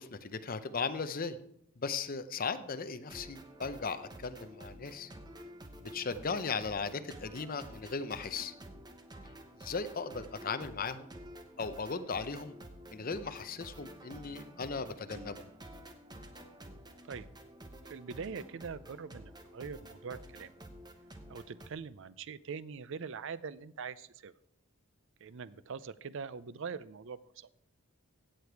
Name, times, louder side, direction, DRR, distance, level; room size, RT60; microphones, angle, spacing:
voice 1, 0.0-1.4 1.8-5.1 5.9-8.5 9.6-11.1 11.6-12.5 12.9-15.5, left 4 dB, 40° left, 10 dB, 0.6 m, -37 dB
sound 1, 3.0-21.7, right 1 dB, 20° right, 0.9 m, -50 dB
voice 2, 17.9-20.5 21.3-24.3 25.2-27.5, right 5 dB, 55° right, 16 dB, 0.5 m, -43 dB
16.5 x 6.8 x 4.6 m, 0.75 s
head